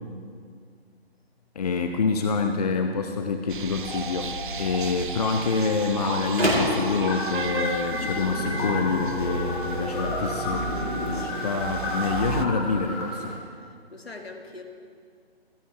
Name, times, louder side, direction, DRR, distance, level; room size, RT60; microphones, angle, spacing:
voice 1, 1.5-10.7 11.0-13.3, left 4 dB, 40° left, 6 dB, 0.7 m, -27 dB
sound 1, 3.5-12.5, right 5 dB, 55° right, 0.6 m, -35 dB
sound 2, 3.8-4.7 5.0-13.0, left 2 dB, 15° left, 1.7 m, -32 dB
Microwave oven, 5.2-13.4, equal, 85° right, 4.2 m, -33 dB
voice 2, 11.1-11.5 13.9-14.6, left 3 dB, 75° left, 4 dB, 1.9 m, -42 dB
25.5 x 10.5 x 3.3 m, 2.1 s
figure-of-eight pair, 145°, 31 cm